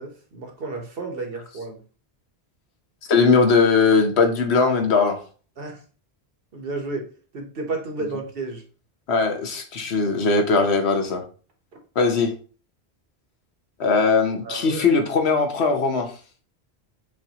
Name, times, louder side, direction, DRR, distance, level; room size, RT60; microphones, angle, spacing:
voice 1, 0.0-1.8 5.6-5.8 6.5-7.1 7.3-8.6 14.4-14.9, right 3 dB, 60° right, 1.1 m, -32 dB
voice 2, 3.1-5.2 9.1-11.2 12.0-12.3 13.8-16.1, left 4 dB, 75° left, 1.1 m, -19 dB
7.5 x 2.5 x 2.8 m
omnidirectional pair, 1.1 m